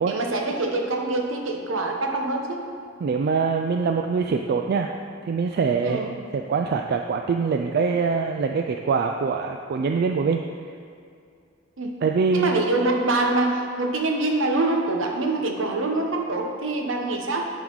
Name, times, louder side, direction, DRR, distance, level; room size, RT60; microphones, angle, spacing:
voice 1, 0.1-2.6 5.8-6.2 11.8-11.9 12.3-17.5, right 2 dB, 75° right, 2 dB, 1.0 m, -25 dB
voice 2, 3.0-4.9 5.2-10.4 12.0-12.6, right 5 dB, 50° right, 4 dB, 0.3 m, -24 dB
11.0 x 3.9 x 4.6 m, 2.4 s
head